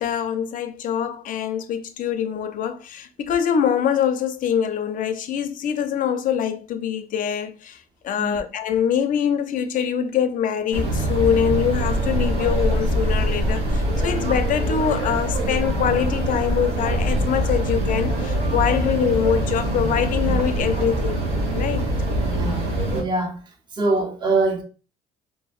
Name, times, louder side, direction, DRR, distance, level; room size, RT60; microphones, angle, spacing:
voice 1, 0.0-21.9, left 8 dB, 55° left, 0.4 m, -24 dB
sound 1, 10.7-23.0, right 1 dB, 65° right, 1.1 m, -23 dB
voice 2, 22.2-23.4 23.7-24.6, right 3 dB, 25° right, 0.6 m, -24 dB
2.7 x 2.4 x 2.3 m
cardioid pair, 110°, 17 cm